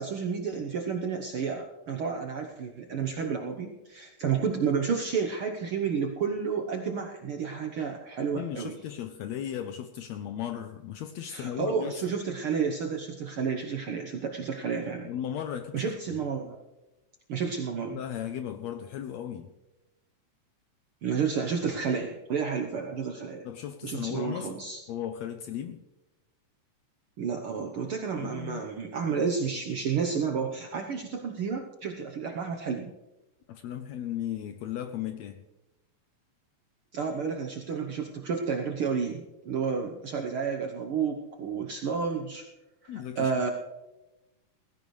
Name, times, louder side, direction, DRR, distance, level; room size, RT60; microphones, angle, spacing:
voice 1, 0.0-8.8 11.3-15.1 15.7-16.6 17.3-18.0 21.0-23.4 23.8-24.8 27.2-32.9 36.9-42.5 42.8-43.5, right 6 dB, 65° right, 1.3 m, -31 dB
voice 2, 8.3-12.0 15.0-16.2 17.9-19.5 23.4-24.5 24.9-25.8 28.2-28.7 33.5-35.4 42.9-43.5, left 10 dB, 75° left, 1.6 m, -36 dB
17.5 x 15.5 x 3.2 m
omnidirectional pair, 3.7 m